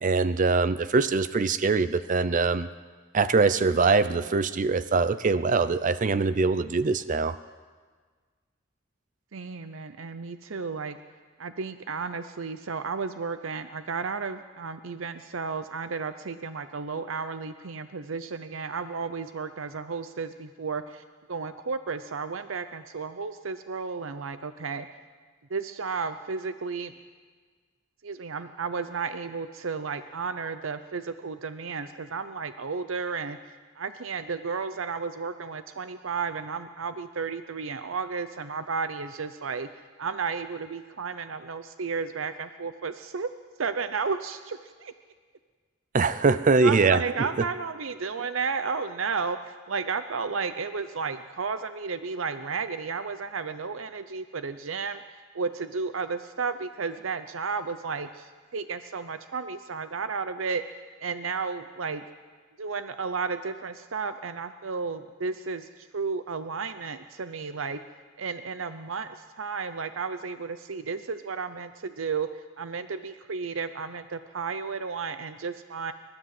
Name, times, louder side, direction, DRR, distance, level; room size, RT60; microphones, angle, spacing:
voice 1, 0.0-2.7 3.1-7.4 45.9-47.0, right 4 dB, 40° right, 13 dB, 0.5 m, -23 dB
voice 2, 9.3-11.0 11.4-21.0 21.3-24.9 25.5-26.9 28.0-39.7 40.0-43.3 43.6-44.9 46.6-60.6 61.0-62.0 62.6-67.8 68.2-72.3 72.6-75.9, right 5 dB, 90° right, 10 dB, 0.7 m, -33 dB
29.5 x 13.0 x 7.7 m, 1.5 s
head